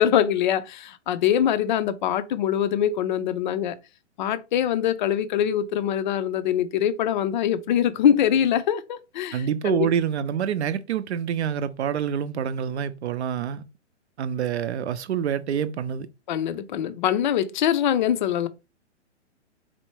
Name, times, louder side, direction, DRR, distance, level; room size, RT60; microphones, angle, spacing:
voice 1, 0.0-3.8 4.2-9.9 16.3-18.5, left 10 dB, 40° left, 0.5 m, -23 dB
voice 2, 9.3-13.6 14.2-16.1, right 8 dB, 65° right, 0.6 m, -27 dB
4.4 x 2.1 x 4.4 m
hypercardioid pair, 135°, 36 cm